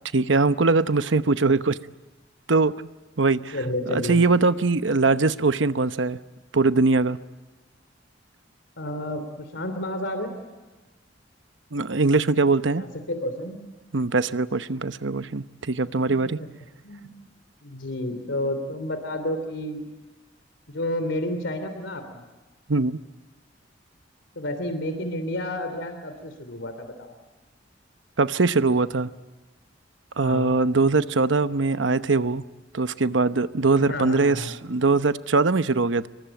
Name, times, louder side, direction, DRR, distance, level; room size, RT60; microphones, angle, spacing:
voice 1, 0.1-1.8 2.5-2.7 3.2-3.6 3.9-6.2 6.5-7.2 11.7-12.8 13.9-16.4 22.7-23.0 28.2-29.1 30.2-32.4 32.7-36.1, right 3 dB, 80° right, 0.9 m, -21 dB
voice 2, 3.5-4.2 8.8-10.3 12.8-13.6 16.2-16.3 16.8-17.1 17.6-19.8 20.7-22.2 24.3-27.1 30.2-30.6 33.8-34.5, left 1 dB, 80° left, 3.2 m, -30 dB
27.0 x 23.5 x 9.0 m
head